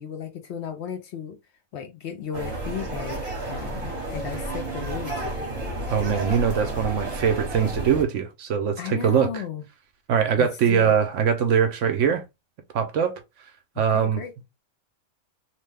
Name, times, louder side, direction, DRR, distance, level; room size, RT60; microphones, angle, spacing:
voice 1, 0.0-1.4 1.7-3.2 3.5-5.6 8.8-9.6 10.4-11.0 13.8-14.3, left 7 dB, 60° left, 0.8 m, -35 dB
sound 1, 2.3-8.0, right 2 dB, 30° right, 1.1 m, -31 dB
voice 2, 5.9-9.3 10.1-12.2 12.7-13.2 13.8-14.2, right 7 dB, 70° right, 0.9 m, -22 dB
2.9 x 2.2 x 3.3 m
omnidirectional pair, 1.4 m